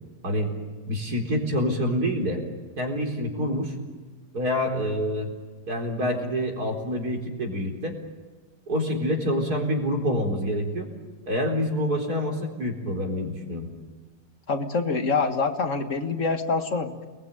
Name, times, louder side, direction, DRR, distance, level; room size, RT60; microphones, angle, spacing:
voice 1, 0.9-2.4 2.8-3.7 4.3-5.3 5.7-7.9 8.7-10.9 11.3-13.7, equal, 65° right, 2 dB, 4.7 m, -27 dB
voice 2, 14.5-17.0, left 4 dB, 50° left, 7 dB, 2.0 m, -25 dB
29.0 x 21.0 x 9.2 m, 1.3 s
omnidirectional pair, 1.8 m